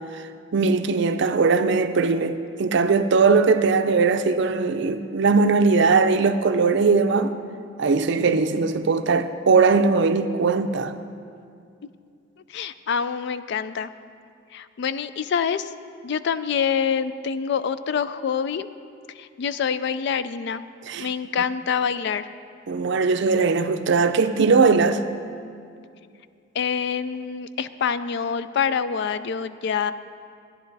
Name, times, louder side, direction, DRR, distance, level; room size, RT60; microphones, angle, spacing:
voice 1, 0.5-7.3 7.8-10.9 20.9-21.1 22.7-25.0, right 4 dB, 60° right, 0.5 m, -20 dB
voice 2, 12.5-13.9 14.5-15.7 16.0-18.7 19.2-20.6 21.0-22.3 26.5-29.9, left 7 dB, 60° left, 0.3 m, -26 dB
13.0 x 10.5 x 4.0 m
head